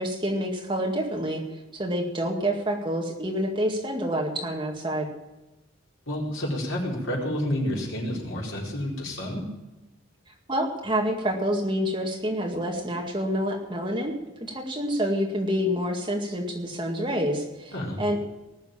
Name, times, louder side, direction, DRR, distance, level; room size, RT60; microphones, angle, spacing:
voice 1, 0.0-1.4 1.7-5.1 10.5-14.1 14.5-18.2, equal, 25° right, 0 dB, 2.1 m, -27 dB
voice 2, 6.1-9.4 17.7-18.0, left 1 dB, 70° left, -3 dB, 4.5 m, -29 dB
19.5 x 6.8 x 8.7 m, 1.0 s
head